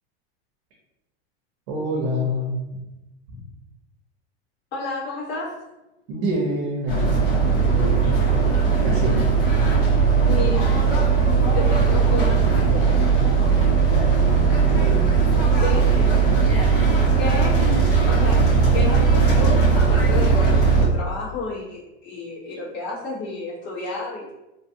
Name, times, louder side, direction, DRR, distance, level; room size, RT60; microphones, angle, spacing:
voice 1, 1.7-2.7 3.3-3.4 6.1-8.2 8.8-9.4 14.1-15.1 15.5-15.6, equal, 60° right, -3 dB, 0.9 m, -27 dB
voice 2, 4.7-5.6 10.2-10.7 11.5-13.2 15.6-15.9 17.2-18.5 18.7-24.3, left 3 dB, 35° left, -8 dB, 1.5 m, -31 dB
sound 1, 6.9-20.9, right 5 dB, 50° left, 1.4 m, -18 dB
3.1 x 2.4 x 2.8 m, 0.98 s
supercardioid pair, 145°, 32 cm